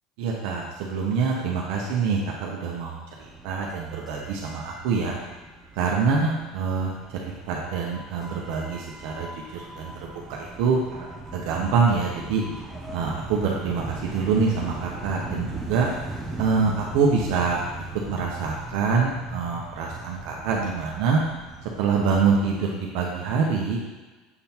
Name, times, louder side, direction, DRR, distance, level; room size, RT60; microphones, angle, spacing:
voice 1, 0.2-5.2 5.8-12.4 12.9-15.9 16.4-17.6 18.0-21.2 21.6-23.8, right 5 dB, 55° right, -2 dB, 0.9 m, -25 dB
sound 1, 3.2-22.6, right 2 dB, 10° right, 0.7 m, -39 dB
6.8 x 3.7 x 4.4 m, 1.2 s
cardioid pair, 180°, 0 cm